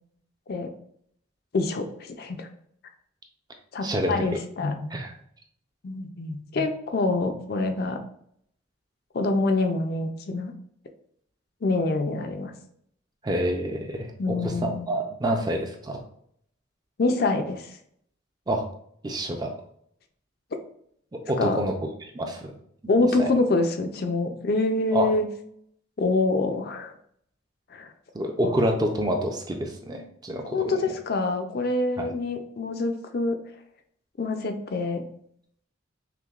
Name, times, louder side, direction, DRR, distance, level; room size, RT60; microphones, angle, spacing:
voice 1, 1.5-2.5 3.7-4.9 5.8-8.0 9.1-10.5 11.6-12.5 14.2-14.9 17.0-17.7 21.4-21.6 22.9-25.2 26.0-26.9 27.7-27.9 30.5-33.4 34.2-35.0, left 3 dB, 50° left, 6 dB, 0.4 m, -26 dB
voice 2, 3.8-4.4 4.9-5.1 13.2-16.0 18.5-18.7 19.0-19.5 21.3-21.7 22.0-22.5 23.0-23.3 24.9-25.1 28.1-30.6 32.0-32.1, right 1 dB, 20° right, 3 dB, 0.4 m, -27 dB
5.7 x 2.1 x 2.4 m, 0.67 s
head